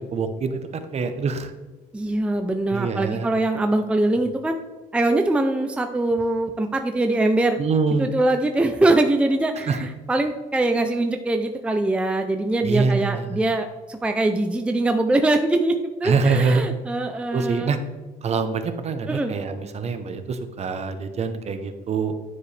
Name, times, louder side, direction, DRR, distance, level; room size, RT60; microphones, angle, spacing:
voice 1, 0.0-1.5 2.7-3.3 7.6-8.1 9.7-9.8 12.6-13.4 16.0-16.8 17.3-17.8 18.2-22.1, right 4 dB, 40° right, 8 dB, 0.8 m, -24 dB
voice 2, 1.9-4.6 4.9-7.6 8.0-17.8 19.1-19.3, right 2 dB, 5° right, 6 dB, 0.4 m, -22 dB
9.6 x 4.8 x 3.3 m, 1.2 s
cardioid pair, 110°, 17 cm